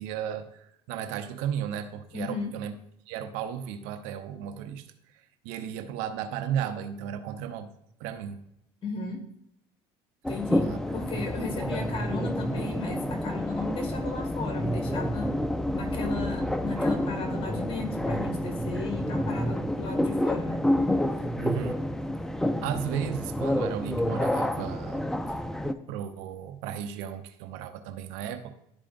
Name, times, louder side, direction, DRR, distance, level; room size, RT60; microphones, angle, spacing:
voice 1, 0.0-2.7 3.1-4.9 5.4-7.7 8.0-8.4 10.6-10.8 11.6-11.7 21.4-21.8 22.6-25.1 25.9-28.5, right 9 dB, 75° right, 8 dB, 0.7 m, -34 dB
voice 2, 2.1-2.5 8.8-9.2 10.3-15.3 15.7-20.6, left 3 dB, 45° left, 3 dB, 2.0 m, -35 dB
sound 1, 10.2-25.7, left 1 dB, 5° left, 0.5 m, -29 dB
11.5 x 4.9 x 2.6 m, 0.77 s
supercardioid pair, 90°, 12 cm